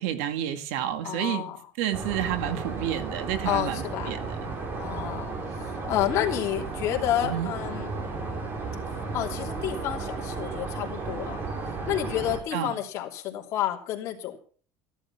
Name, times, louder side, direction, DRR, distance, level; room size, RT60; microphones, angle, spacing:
voice 1, 0.0-1.4 1.8-4.5 7.2-7.5 12.5-12.7, right 11 dB, 90° right, 2.1 m, -30 dB
voice 2, 1.0-1.6 3.4-4.2 4.8-8.0 9.1-11.4 11.9-14.4, left 12 dB, 45° left, 3.0 m, -30 dB
sound 1, 1.9-12.4, right 3 dB, 30° right, 3.4 m, -34 dB
14.5 x 11.5 x 5.9 m
cardioid pair, 170°, 7 cm